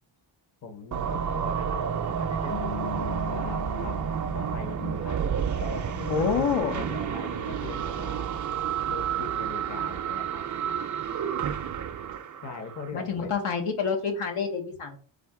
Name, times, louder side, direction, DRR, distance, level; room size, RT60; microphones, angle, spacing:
voice 1, 0.6-2.6 3.3-4.0 4.3-5.2 5.6-8.3 8.9-10.4 12.4-13.4, left 4 dB, 35° left, 6 dB, 0.7 m, -40 dB
sound 1, 0.9-12.9, right 8 dB, 40° right, 0.4 m, -30 dB
sound 2, 2.5-5.8, left 16 dB, 65° left, 0.9 m, -40 dB
voice 2, 6.1-6.8 12.9-15.0, left 6 dB, 85° left, 4 dB, 1.2 m, -27 dB
3.9 x 2.8 x 4.7 m, 0.43 s
wide cardioid pair, 145°, 50 cm